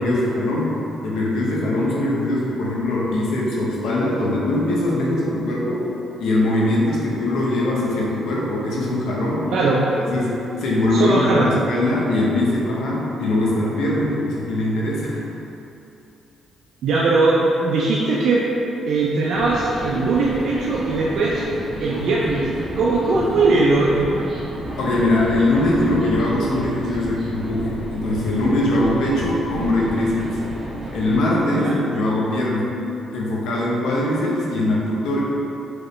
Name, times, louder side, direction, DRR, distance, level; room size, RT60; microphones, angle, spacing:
voice 1, 0.0-5.9 6.2-9.5 10.0-15.2 24.8-30.4 30.9-32.8 33.1-35.2, left 1 dB, 80° left, -5 dB, 0.8 m, -21 dB
voice 2, 9.5-9.9 10.9-11.5 16.8-18.4 18.9-21.5 21.8-24.1 31.5-31.8, right 3 dB, 70° right, -5 dB, 0.5 m, -20 dB
sound 1, 19.3-31.2, right 1 dB, 40° right, 1.3 m, -32 dB
4.9 x 3.1 x 3.1 m, 2.8 s
cardioid pair, 90°, 0 cm